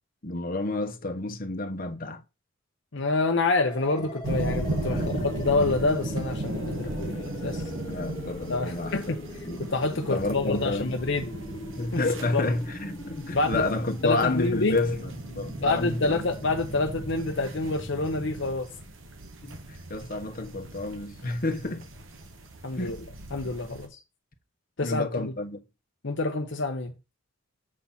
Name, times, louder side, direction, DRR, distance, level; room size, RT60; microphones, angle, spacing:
voice 1, 0.2-2.2 4.0-4.1 4.9-5.3 6.8-7.5 7.8-9.6 10.1-10.9 11.8-15.1 15.4-16.2 19.4-21.9 22.7-23.0 24.8-25.6, left 2 dB, 45° left, 1.2 m, -30 dB
voice 2, 2.9-7.7 8.5-9.2 9.6-11.3 11.9-12.0 12.3-12.5 13.3-13.6 14.0-14.8 15.6-18.7 22.6-23.0 23.3-24.0 24.8-25.3 26.0-26.9, left 3 dB, 65° left, 0.9 m, -27 dB
sound 1, 3.6-18.5, left 1 dB, 20° left, 2.1 m, -41 dB
sound 2, 4.2-23.9, right 1 dB, 80° right, 1.5 m, -37 dB
7.6 x 4.2 x 5.7 m
head